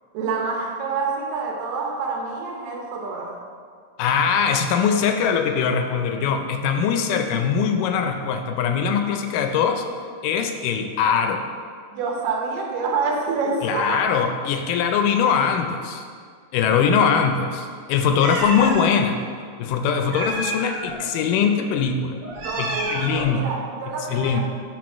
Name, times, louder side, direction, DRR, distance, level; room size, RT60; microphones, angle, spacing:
voice 1, 0.1-3.5 11.9-14.1 16.7-17.0 22.4-24.4, right 4 dB, 90° right, 0 dB, 2.6 m, -27 dB
voice 2, 4.0-9.9 10.2-11.5 13.6-16.1 16.5-19.2 19.6-22.2 22.6-23.6 24.1-24.4, left 6 dB, 85° left, 6 dB, 2.1 m, -22 dB
Meow, 18.2-18.8 20.1-21.0 22.2-23.3, right 1 dB, 70° right, 2.8 m, -29 dB
6.1 x 4.4 x 6.1 m, 2.1 s
omnidirectional pair, 3.8 m